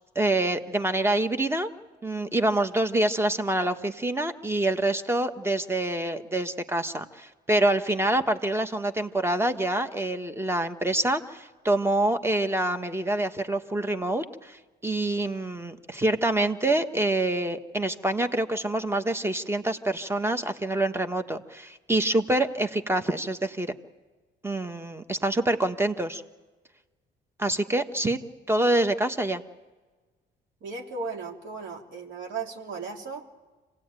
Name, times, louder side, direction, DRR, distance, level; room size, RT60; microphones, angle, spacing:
voice 1, 0.1-1.7 2.0-23.7 24.4-26.2 27.4-28.2 28.5-29.4, right 1 dB, 10° right, 8 dB, 1.4 m, -26 dB
voice 2, 30.6-33.2, right 4 dB, 75° right, 1 dB, 3.2 m, -36 dB
26.0 x 17.5 x 9.1 m, 1.3 s
cardioid pair, 90°, 20 cm